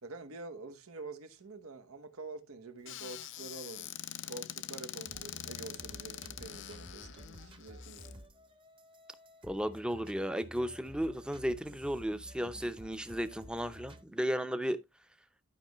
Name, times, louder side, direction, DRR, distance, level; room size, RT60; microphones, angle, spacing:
voice 1, 0.0-3.9 4.3-8.2, right 3 dB, 90° right, 1.1 m, -47 dB
Squeak / Cupboard open or close, 2.8-8.1, left 12 dB, 60° left, 0.5 m, -44 dB
sound 1, 5.0-14.0, equal, 25° right, 0.9 m, -52 dB
voice 2, 9.4-14.8, equal, 5° right, 0.6 m, -34 dB
11.5 x 5.3 x 3.0 m
head